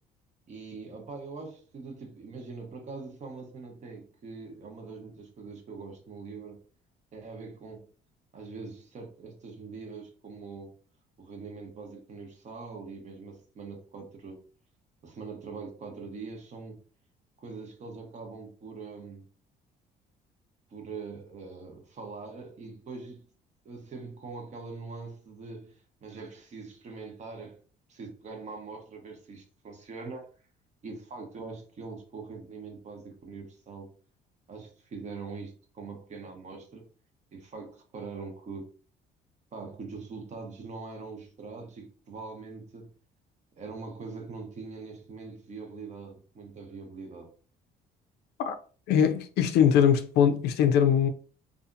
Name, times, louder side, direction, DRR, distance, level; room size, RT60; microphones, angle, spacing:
voice 1, 0.5-6.6 7.1-7.9 8.3-10.7 11.2-14.4 15.0-16.8 17.4-19.2 20.7-23.2 23.6-27.6 27.9-30.3 30.8-33.9 34.5-36.8 37.3-38.7 39.5-42.9 43.6-47.3, right 4 dB, 45° right, 0.9 m, -42 dB
voice 2, 48.9-51.1, left 8 dB, 75° left, 0.4 m, -22 dB
2.7 x 2.4 x 2.5 m
cardioid pair, 110°, 17 cm